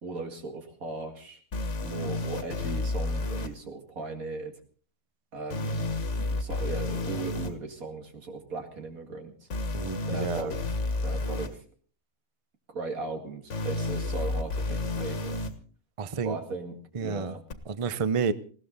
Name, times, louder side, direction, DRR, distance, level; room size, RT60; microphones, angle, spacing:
voice 1, 0.0-1.4 1.8-4.6 5.3-5.9 6.3-9.5 10.1-10.7 11.0-11.6 12.7-15.4 16.2-17.4, right 3 dB, 75° right, 2.6 m, -37 dB
sound 1, 1.5-3.5 5.5-7.5 9.5-11.5 13.5-15.5 17.5-17.6, left 2 dB, 55° left, 1.7 m, -31 dB
voice 2, 9.7-10.5 16.0-16.4 16.9-17.3 17.7-18.3, right 5 dB, 35° right, 0.6 m, -30 dB
20.0 x 16.5 x 4.0 m
omnidirectional pair, 1.5 m